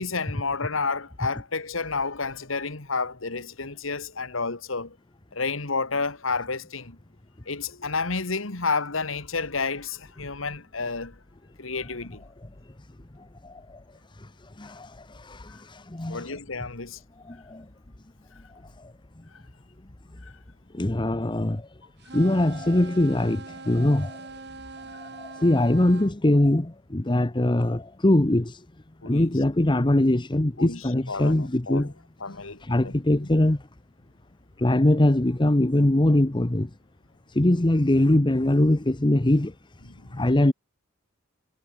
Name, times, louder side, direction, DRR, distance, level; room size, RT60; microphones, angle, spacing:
voice 1, 0.0-5.0 5.3-7.0 7.5-11.2 11.6-12.2 15.5-15.6 16.1-17.0 20.2-20.3 29.0-29.3 30.6-31.9 32.2-32.9 39.9-40.4, left 4 dB, 80° left, 2.2 m, -30 dB
voice 2, 13.4-13.8 14.2-14.3 14.6-16.3 17.3-17.6 20.7-21.7 22.1-24.2 25.0-28.6 29.0-31.9 32.6-33.6 34.6-36.7 37.3-39.5 40.1-40.5, left 1 dB, 25° left, 1.0 m, -22 dB
sound 1, 22.0-26.1, right 3 dB, 60° right, 4.1 m, -42 dB
head